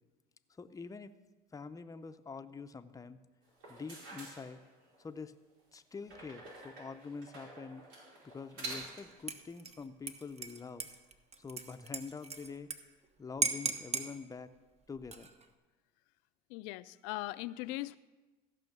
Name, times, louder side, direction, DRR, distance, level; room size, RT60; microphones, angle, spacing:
voice 1, 0.6-1.2 1.5-3.2 3.7-4.6 5.0-5.3 5.7-7.9 8.2-10.9 11.4-12.7 13.2-14.5 14.9-15.3, left 5 dB, 20° left, 9 dB, 0.6 m, -46 dB
sound 1, 3.5-5.1 6.1-9.2, right 2 dB, 75° right, 4.9 m, -48 dB
Dishes pots and pans / Liquid, 8.6-8.9 9.3-12.8 13.0-13.1 13.4-14.1 15.0-15.5, right 4 dB, 35° right, 1.1 m, -37 dB
voice 2, 16.5-18.0, left 18 dB, 75° left, 16 dB, 0.4 m, -39 dB
15.0 x 5.7 x 6.7 m, 1.2 s
supercardioid pair, 80°, 20 cm